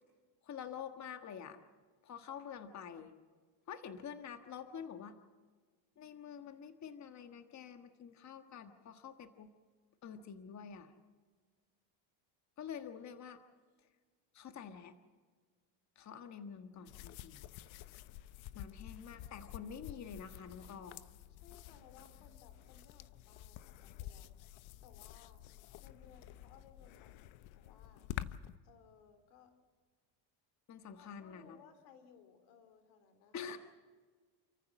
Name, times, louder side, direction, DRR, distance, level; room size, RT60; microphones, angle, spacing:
voice 1, 0.4-1.6 2.0-3.1 3.7-5.1 6.0-9.5 10.0-10.9 12.6-13.4 14.3-14.9 15.9-17.5 18.5-21.0 30.7-31.6 33.3-33.6, left 7 dB, 35° left, 8 dB, 1.5 m, -47 dB
sound 1, 16.9-28.6, left 13 dB, 70° left, 1.0 m, -49 dB
voice 2, 21.3-24.3 24.8-25.4 25.8-28.1 28.6-29.5 30.9-33.5, left 7 dB, 85° left, 9 dB, 3.3 m, -62 dB
29.0 x 14.5 x 7.6 m, 1.5 s
cardioid pair, 120°, 49 cm